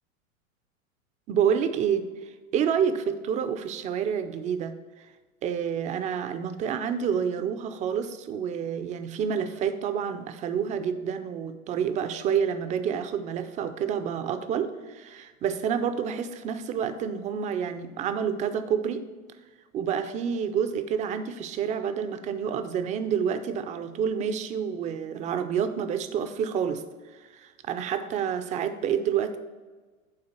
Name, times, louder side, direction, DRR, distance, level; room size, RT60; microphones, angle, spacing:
voice 1, 1.3-5.1 5.4-19.1 19.7-29.4, right 7 dB, 20° right, 10 dB, 0.4 m, -28 dB
8.9 x 3.7 x 6.7 m, 1.3 s
hypercardioid pair, 110°, 42 cm